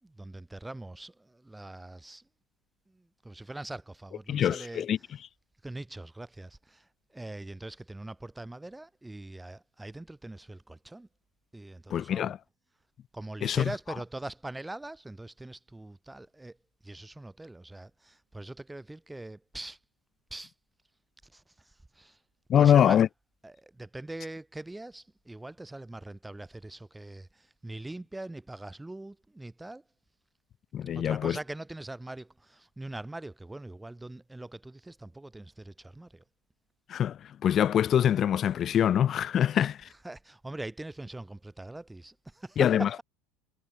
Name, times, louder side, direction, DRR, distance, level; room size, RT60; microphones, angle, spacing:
voice 1, 0.0-2.2 2.9-4.9 5.6-11.1 11.5-12.3 13.1-16.6 16.8-19.8 20.3-20.5 21.2-22.2 22.6-23.0 23.4-29.8 30.9-36.2 39.5-39.6 40.0-43.0, right 2 dB, 10° right, 7.6 m, -42 dB
voice 2, 4.3-5.0 11.9-12.4 13.4-13.7 22.5-23.1 30.7-31.4 36.9-39.9 42.6-42.9, left 9 dB, 45° left, 0.5 m, -24 dB
hypercardioid pair, 85°, 0 cm